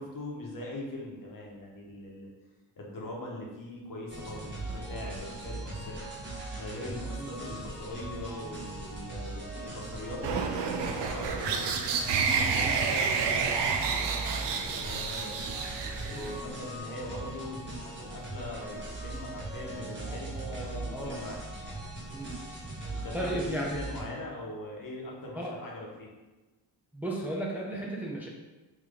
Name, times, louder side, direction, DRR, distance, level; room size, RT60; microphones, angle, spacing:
voice 1, 0.0-2.3 2.7-6.0 6.5-11.6 12.1-15.3 16.0-21.4 22.9-26.1, left 1 dB, 50° left, -2 dB, 1.2 m, -41 dB
sound 1, 4.1-24.0, right 2 dB, 25° right, 1.2 m, -40 dB
sound 2, 10.2-16.4, right 6 dB, 70° right, 0.6 m, -30 dB
voice 2, 20.0-21.2 22.1-22.4 23.1-23.8 25.4-25.5 26.9-28.3, right 1 dB, 5° right, -3 dB, 0.6 m, -36 dB
3.4 x 3.0 x 3.7 m, 1.2 s
cardioid pair, 70°, 43 cm